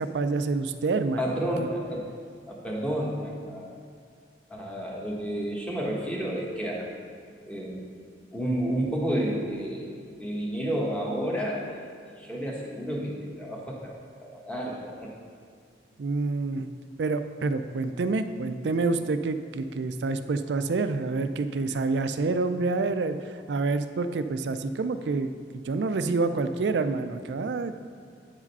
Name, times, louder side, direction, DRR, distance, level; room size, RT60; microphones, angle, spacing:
voice 1, 0.0-1.2 16.0-16.7 17.0-23.2 23.5-27.8, right 3 dB, 80° right, 10 dB, 0.4 m, -27 dB
voice 2, 1.2-2.0 2.5-3.8 4.5-6.9 7.4-7.8 8.3-11.8 12.2-14.0 14.3-15.1, equal, 5° left, -3 dB, 1.1 m, -31 dB
8.4 x 4.9 x 5.4 m, 2.1 s
head